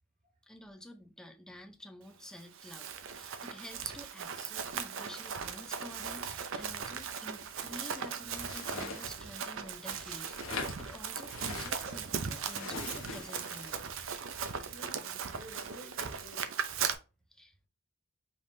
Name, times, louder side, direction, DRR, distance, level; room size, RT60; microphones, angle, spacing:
voice 1, 0.5-13.9 17.3-17.5, equal, 5° left, 0.6 m, -50 dB
Run, 2.4-16.9, right 7 dB, 65° right, 0.6 m, -38 dB
sound 1, 8.3-9.4 10.3-12.0 12.4-13.7, left 3 dB, 65° left, 1.2 m, -42 dB
sound 2, 9.5-14.7, right 2 dB, 90° right, 2.1 m, -55 dB
voice 2, 14.7-16.4, right 1 dB, 40° right, 1.6 m, -51 dB
5.3 x 3.5 x 2.6 m
head